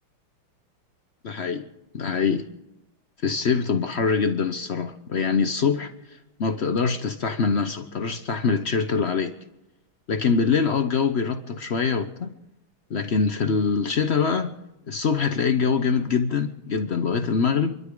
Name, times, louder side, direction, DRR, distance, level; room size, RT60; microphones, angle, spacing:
voice 1, 1.2-1.7 1.9-2.5 3.2-9.3 10.1-12.3 12.9-14.5 14.9-17.7, left 5 dB, 70° left, 0.6 m, -24 dB
28.5 x 12.5 x 3.8 m
omnidirectional pair, 2.3 m